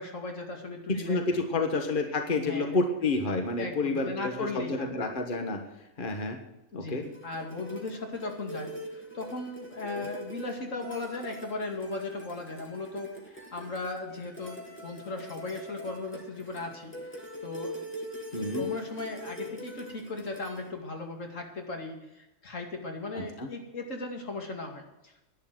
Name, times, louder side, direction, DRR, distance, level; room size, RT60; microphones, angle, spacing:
voice 1, 0.0-1.7 2.4-2.8 3.6-4.9 6.7-16.9 17.4-17.7 18.4-25.2, left 3 dB, 75° left, 2 dB, 2.7 m, -37 dB
voice 2, 0.9-5.6 6.0-6.4 6.7-7.1 10.0-10.1 18.3-18.7 23.1-23.5, left 3 dB, 40° left, 4 dB, 1.6 m, -29 dB
sound 1, 7.0-20.7, left 1 dB, 10° left, 2.4 m, -43 dB
11.5 x 10.5 x 7.8 m, 0.92 s
omnidirectional pair, 1.3 m